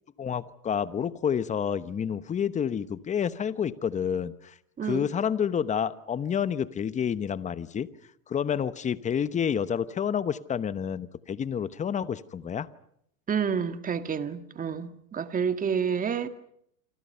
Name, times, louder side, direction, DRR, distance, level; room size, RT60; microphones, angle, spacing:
voice 1, 0.2-4.5 4.8-7.9 8.3-12.7, left 8 dB, 15° left, 1.0 m, -29 dB
voice 2, 4.8-5.1 13.3-16.3, right 7 dB, 15° right, 1.7 m, -29 dB
28.0 x 26.5 x 5.6 m
hypercardioid pair, 120°, 46 cm